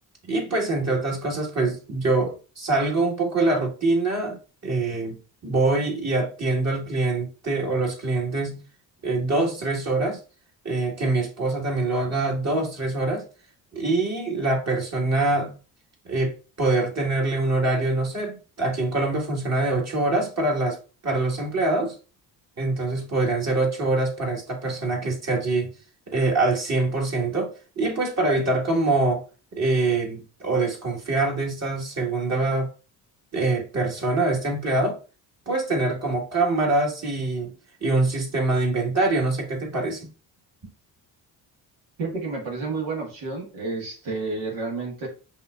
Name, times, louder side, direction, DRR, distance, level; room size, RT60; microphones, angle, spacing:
voice 1, 0.3-8.6 9.0-10.2 10.7-13.2 13.7-15.5 16.1-20.8 21.0-21.9 22.6-25.7 26.1-29.2 29.5-32.7 33.3-35.0 35.5-37.5 37.8-40.1, right 2 dB, 35° right, 1.9 m, -24 dB
voice 2, 42.0-45.1, right 3 dB, 75° right, 1.8 m, -30 dB
5.5 x 2.9 x 2.5 m
supercardioid pair, 60°, 44 cm